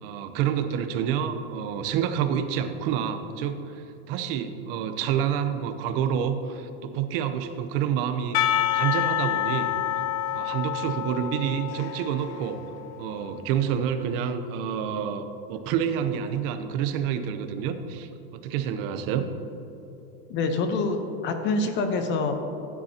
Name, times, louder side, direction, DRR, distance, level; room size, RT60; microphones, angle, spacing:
voice 1, 0.0-9.7 10.3-12.6 13.0-19.3, right 8 dB, 60° right, 8 dB, 0.8 m, -28 dB
Percussion / Church bell, 8.3-13.4, left 11 dB, 85° left, 0.9 m, -28 dB
voice 2, 20.3-22.3, left 3 dB, 35° left, 6 dB, 0.9 m, -26 dB
14.5 x 9.5 x 2.9 m, 3.0 s
supercardioid pair, 155°, 32 cm